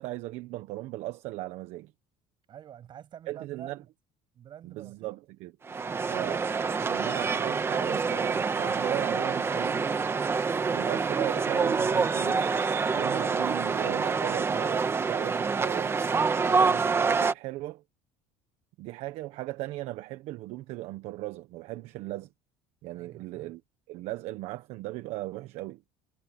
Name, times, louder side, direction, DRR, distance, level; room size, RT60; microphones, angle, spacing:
voice 1, 0.0-1.9 3.3-3.8 4.6-5.5 6.1-6.5 6.8-9.9 10.7-12.5 12.9-15.9 16.3-17.8 18.8-22.3 22.8-23.6 23.9-25.8, right 18 dB, 65° right, 1.2 m, -37 dB
voice 2, 2.5-3.9 4.3-5.2 22.9-23.5, right 10 dB, 40° right, 7.3 m, -48 dB
sound 1, 5.6-17.3, right 5 dB, 20° right, 1.3 m, -27 dB
cardioid pair, 135°, 12 cm